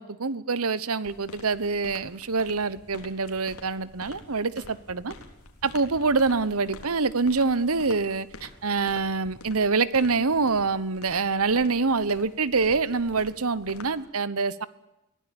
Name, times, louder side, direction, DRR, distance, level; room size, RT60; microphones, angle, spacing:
voice 1, 0.0-5.1 5.6-14.7, right 4 dB, 75° right, 17 dB, 1.1 m, -25 dB
sound 1, 1.1-14.0, left 2 dB, 75° left, 3.6 m, -48 dB
22.5 x 16.5 x 8.8 m, 0.91 s
head